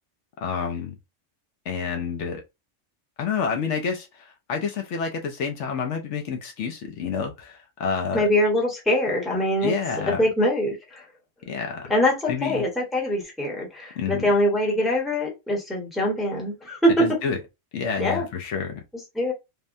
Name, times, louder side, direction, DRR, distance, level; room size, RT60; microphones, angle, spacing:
voice 1, 0.4-0.9 1.7-2.4 3.2-8.3 9.6-10.2 11.5-11.9 12.3-12.6 14.0-14.3 17.0-17.4 17.7-18.8, left 6 dB, 70° left, 0.9 m, -29 dB
voice 2, 8.1-9.7 10.1-11.0 11.9-17.1 18.0-18.3 19.1-19.3, equal, ahead, 0.8 m, -23 dB
3.4 x 2.1 x 2.5 m
omnidirectional pair, 1.3 m